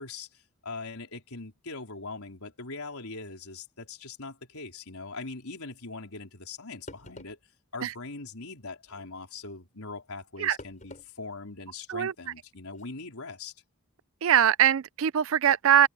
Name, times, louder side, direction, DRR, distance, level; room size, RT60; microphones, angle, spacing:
voice 1, 0.0-7.4 7.7-13.5, left 3 dB, 85° left, 4.3 m, -41 dB
sound 1, 6.5-6.6 6.9-7.4 8.8-9.1 10.6-11.1 11.5-11.6 12.7-12.9, left 2 dB, 35° left, 5.7 m, -47 dB
voice 2, 14.2-15.9, right 9 dB, 65° right, 0.4 m, -22 dB
head